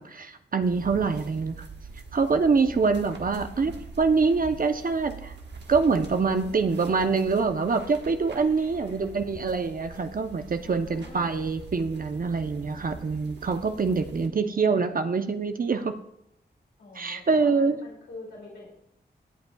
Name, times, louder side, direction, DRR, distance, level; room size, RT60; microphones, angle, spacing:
voice 1, 0.0-1.7 2.1-3.7 4.0-5.4 5.7-15.9 17.0-17.8, right 4 dB, 50° right, 8 dB, 0.8 m, -25 dB
sound 1, 0.6-14.3, right 4 dB, 75° right, 1.5 m, -44 dB
voice 2, 2.9-3.9 6.7-7.6 8.5-9.2 10.6-11.3 14.3-14.6 16.8-18.7, left 2 dB, 80° left, -3 dB, 2.6 m, -47 dB
17.0 x 8.1 x 2.3 m, 0.77 s
cardioid pair, 65°, 18 cm